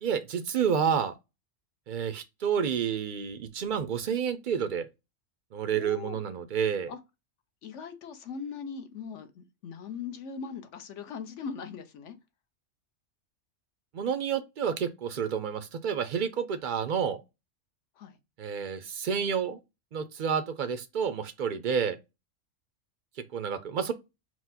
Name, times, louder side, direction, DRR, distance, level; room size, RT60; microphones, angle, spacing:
voice 1, 0.0-1.1 1.9-4.9 5.5-6.9 13.9-17.2 18.4-19.6 19.9-22.0 23.3-23.9, right 7 dB, 65° right, 0.5 m, -29 dB
voice 2, 5.7-6.2 6.9-7.0 7.6-12.2 18.0-18.2, left 6 dB, 70° left, 1.0 m, -40 dB
4.5 x 2.1 x 3.9 m
omnidirectional pair, 1.3 m